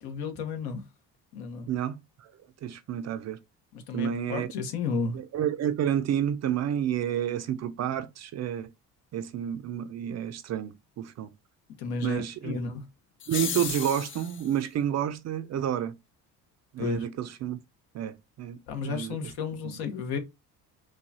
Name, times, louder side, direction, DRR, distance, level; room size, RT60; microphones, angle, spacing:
voice 1, 0.0-0.8 1.3-1.7 3.7-5.2 11.8-12.9 16.8-17.0 18.7-20.2, left 5 dB, 70° left, 1.1 m, -33 dB
voice 2, 1.7-2.3 2.6-3.4 3.9-4.5 5.1-8.7 9.1-11.3 12.0-12.6 13.3-15.9 16.7-17.6 17.9-18.6 18.8-19.3 19.6-19.8, right 10 dB, 45° right, 0.5 m, -30 dB
sound 1, 13.2-14.5, left 7 dB, 35° left, 0.5 m, -34 dB
4.7 x 2.3 x 2.7 m
cardioid pair, 105°, 38 cm